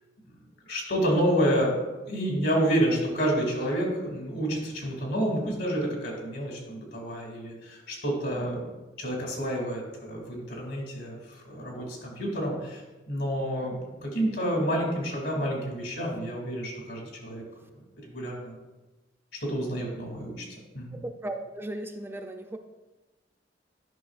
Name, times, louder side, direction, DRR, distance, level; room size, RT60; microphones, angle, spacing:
voice 1, 0.7-1.8 2.1-8.6 9.0-12.8 13.1-13.8 14.0-17.4 18.0-18.6 19.4-20.4 20.7-21.0, equal, 75° left, -1 dB, 2.3 m, -29 dB
voice 2, 20.9-22.6, right 1 dB, 15° right, 5 dB, 0.3 m, -36 dB
11.0 x 5.7 x 2.4 m, 1.1 s
head